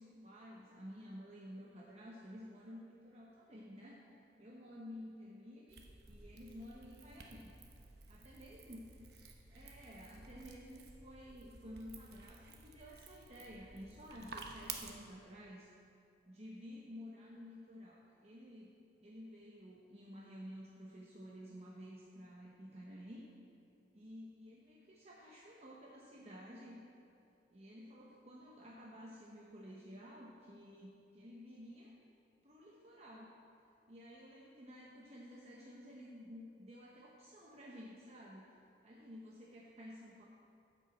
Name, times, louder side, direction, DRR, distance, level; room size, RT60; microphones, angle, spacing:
voice 1, 0.0-4.1 4.4-5.8 6.1-7.5 8.1-8.9 9.5-15.7 16.3-18.7 19.0-23.3 23.9-26.8 27.5-31.9 32.4-33.3 33.9-38.6 38.8-40.3, equal, 40° right, -4 dB, 1.0 m, -52 dB
sound 1, 5.7-14.9, right 5 dB, 65° right, 1.0 m, -53 dB
10.0 x 5.7 x 7.3 m, 2.5 s
head